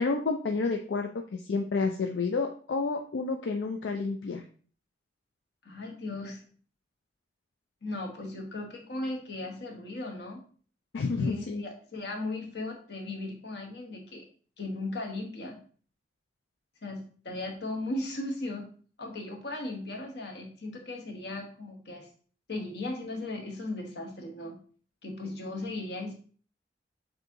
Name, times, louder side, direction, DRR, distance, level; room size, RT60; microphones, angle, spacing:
voice 1, 0.0-4.4 10.9-11.6, left 4 dB, 80° left, 4 dB, 0.4 m, -30 dB
voice 2, 5.6-6.4 7.8-10.4 11.2-14.2 14.6-15.6 16.8-18.7 19.0-22.1 22.5-24.6 25.0-26.1, left 2 dB, 65° left, 2 dB, 1.0 m, -37 dB
6.7 x 2.7 x 2.6 m, 0.43 s
head